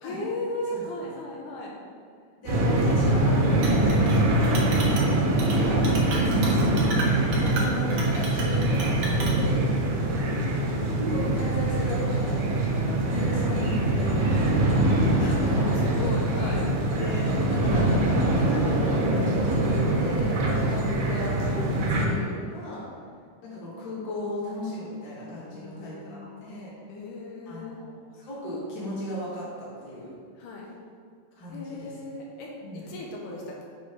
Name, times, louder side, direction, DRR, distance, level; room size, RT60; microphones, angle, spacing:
voice 1, 0.0-1.7 4.8-5.2 13.2-13.3 15.1-16.7 19.2-19.4 25.5-26.6 26.9-27.8 30.4-30.7 31.5-33.6, left 2 dB, 80° left, -2 dB, 2.2 m, -37 dB
voice 2, 0.7-1.1 2.4-5.2 5.6-6.9 7.4-9.7 10.5-16.0 17.0-22.8 23.4-26.7 27.4-30.1 31.3-31.9 32.6-32.9, equal, 40° left, -7 dB, 1.7 m, -36 dB
sound 1, 2.5-22.1, right 1 dB, 70° right, 2.1 m, -23 dB
Chink clink, 3.6-4.2 4.4-5.1 5.4-5.6 5.8-9.4, right 2 dB, 90° right, 1.2 m, -34 dB
7.1 x 3.0 x 5.0 m, 2.1 s
omnidirectional pair, 3.7 m